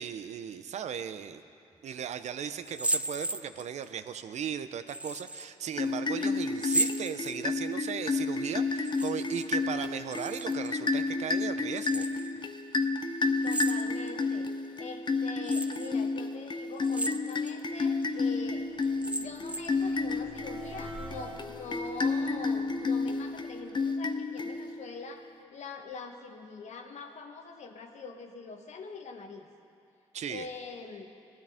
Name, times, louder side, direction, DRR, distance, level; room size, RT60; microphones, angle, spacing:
voice 1, 0.0-1.4 1.8-12.1 30.1-30.5, right 8 dB, 65° right, 11 dB, 0.6 m, -37 dB
sound 1, 2.6-3.9 4.9-5.5 6.6-7.7 8.8-9.5 9.8-10.7 11.7-12.3 13.4-14.2 14.8-14.9 15.4-15.9 16.8-17.6 18.0-18.1 18.8-19.8, right 2 dB, 10° right, 0.4 m, -34 dB
sound 2, 5.7-24.9, left 3 dB, 40° left, 0.8 m, -31 dB
voice 2, 13.4-14.5 14.8-18.7 19.1-25.2 25.5-29.5 30.3-31.1, left 4 dB, 65° left, 4 dB, 1.3 m, -44 dB
sound 3, 17.4-24.6, right 1 dB, 40° right, 2.2 m, -49 dB
18.5 x 12.5 x 3.5 m, 2.6 s
cardioid pair, 70°, 12 cm